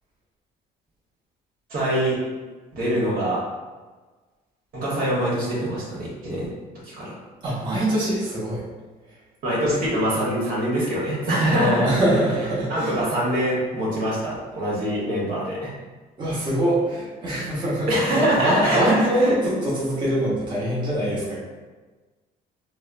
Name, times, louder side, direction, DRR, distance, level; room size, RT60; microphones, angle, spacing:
voice 1, 1.7-2.2 2.7-3.4 4.7-6.5 6.8-7.1 9.4-11.9 12.7-15.7 17.9-19.4, equal, 60° right, -6 dB, 1.1 m, -24 dB
voice 2, 7.4-8.6 9.1-9.2 11.4-13.0 16.2-21.4, right 1 dB, 25° right, -8 dB, 0.9 m, -24 dB
3.4 x 2.0 x 2.5 m, 1.3 s
cardioid pair, 110°, 17 cm